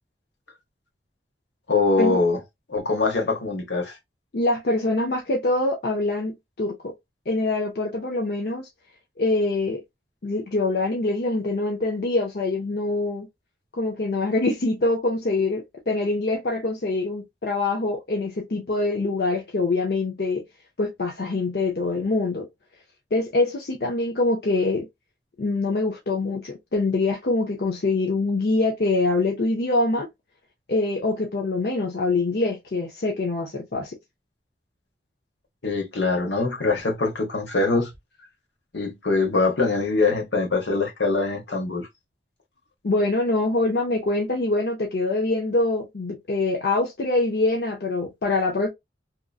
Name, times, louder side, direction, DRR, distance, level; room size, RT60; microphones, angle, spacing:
voice 1, 1.7-2.4 2.7-4.0 35.6-37.9 38.7-41.9, left 3 dB, 80° left, 1.1 m, -23 dB
voice 2, 4.3-6.9 7.3-8.7 9.2-9.8 10.2-13.3 13.7-20.4 20.8-22.5 23.1-24.9 25.4-30.1 30.7-34.0 42.8-48.7, left 2 dB, 60° left, 0.6 m, -24 dB
2.9 x 2.4 x 2.3 m
head